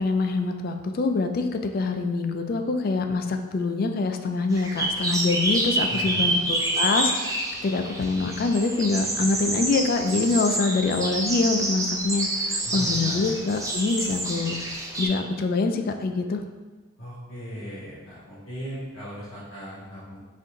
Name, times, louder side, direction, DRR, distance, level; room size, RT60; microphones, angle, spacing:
voice 1, 0.0-14.6 15.0-16.4, left 3 dB, 45° left, 6 dB, 0.3 m, -25 dB
sound 1, 4.5-15.1, right 1 dB, 15° right, 0.5 m, -28 dB
voice 2, 5.9-6.2 12.6-13.3 17.0-20.2, equal, 85° left, -9 dB, 1.4 m, -37 dB
4.3 x 2.6 x 3.6 m, 1.3 s
head